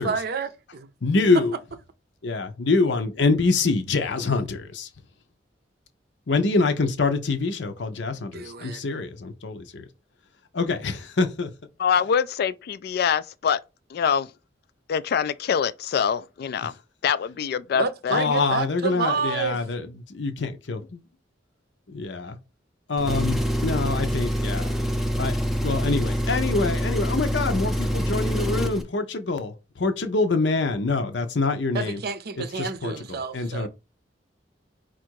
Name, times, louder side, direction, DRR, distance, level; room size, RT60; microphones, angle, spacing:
voice 1, 0.0-0.9 8.3-8.8 17.7-19.6 31.7-33.7, right 5 dB, 60° right, 0.6 m, -29 dB
voice 2, 1.0-1.5 2.2-4.9 6.3-9.9 10.5-11.5 18.1-21.0 21.9-22.4 22.9-24.7 25.2-32.0 32.4-33.7, left 3 dB, 75° left, 0.7 m, -25 dB
voice 3, 11.8-13.6 13.9-14.3 14.9-16.7 17.0-18.2, left 7 dB, 60° left, 0.3 m, -24 dB
Engine, 23.0-28.8, equal, ahead, 0.5 m, -25 dB
4.5 x 2.5 x 4.6 m
head